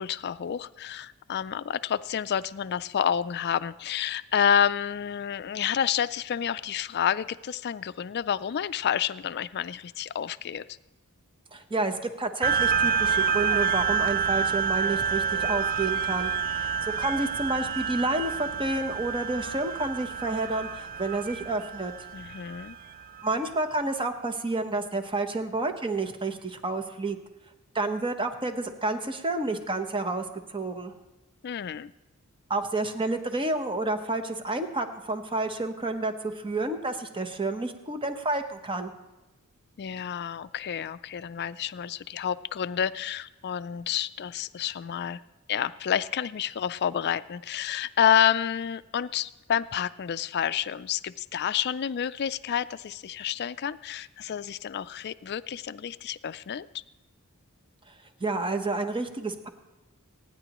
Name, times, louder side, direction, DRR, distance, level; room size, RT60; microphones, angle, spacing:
voice 1, 0.0-10.6 22.1-22.8 31.4-31.9 39.8-45.2 45.5-56.7, left 9 dB, 50° left, 15 dB, 0.4 m, -29 dB
voice 2, 11.5-16.3 16.6-21.9 23.2-27.2 27.7-30.9 32.5-38.9 58.2-59.5, right 2 dB, 25° right, 7 dB, 0.9 m, -30 dB
sound 1, 12.4-23.3, right 6 dB, 40° right, 0.3 m, -28 dB
26.5 x 9.9 x 3.0 m, 1.1 s
head